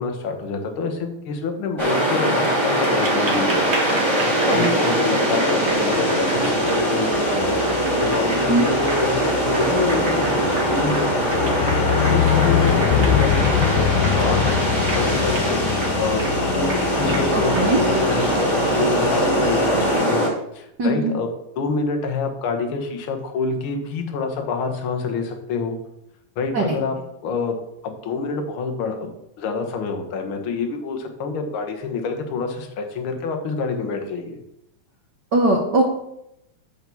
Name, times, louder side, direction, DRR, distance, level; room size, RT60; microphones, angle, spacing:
voice 1, 0.0-9.1 9.4-10.3 10.7-14.6 14.9-16.2 16.5-20.3 20.5-21.3 21.6-25.8 26.3-27.0 27.2-27.6 27.8-34.4, left 4 dB, 55° left, 4 dB, 1.7 m, -27 dB
sound 1, 1.8-20.3, right 1 dB, 10° right, 1.8 m, -21 dB
Applause, 2.3-20.0, right 2 dB, 35° right, 1.5 m, -33 dB
sound 2, 5.4-20.0, left 9 dB, 90° left, 2.0 m, -25 dB
voice 2, 17.3-17.8 20.8-21.1 26.5-26.7 35.3-35.8, right 2 dB, 80° right, 0 dB, 0.9 m, -20 dB
9.2 x 3.8 x 7.0 m, 0.80 s
omnidirectional pair, 3.3 m